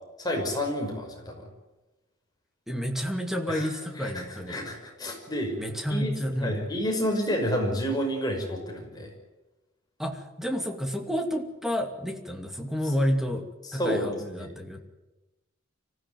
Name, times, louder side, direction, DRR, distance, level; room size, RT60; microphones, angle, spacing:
voice 1, 0.2-1.5 3.5-5.6 5.9-6.1 6.4-9.1 13.7-14.5, equal, 20° left, 1 dB, 5.8 m, -30 dB
voice 2, 2.7-4.6 5.6-6.6 10.0-14.8, equal, ahead, 4 dB, 2.5 m, -30 dB
25.0 x 15.5 x 9.5 m, 1.1 s
head